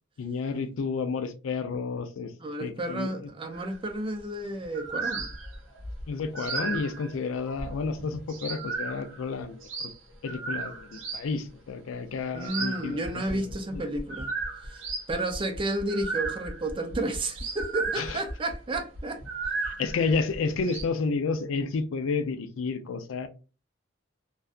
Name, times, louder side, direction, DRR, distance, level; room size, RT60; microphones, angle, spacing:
voice 1, 0.2-2.3 2.6-3.3 6.1-9.9 10.2-13.4 13.7-13.8 18.0-18.2 19.6-23.3, left 4 dB, 80° left, 0.4 m, -31 dB
voice 2, 2.4-5.3 12.3-14.3 14.6-14.8 15.1-19.2 19.5-19.6, right 1 dB, 25° right, 0.4 m, -32 dB
sound 1, 3.5-3.8 4.6-11.3 12.3-20.8, right 4 dB, 70° right, 0.8 m, -35 dB
2.6 x 2.2 x 2.3 m
head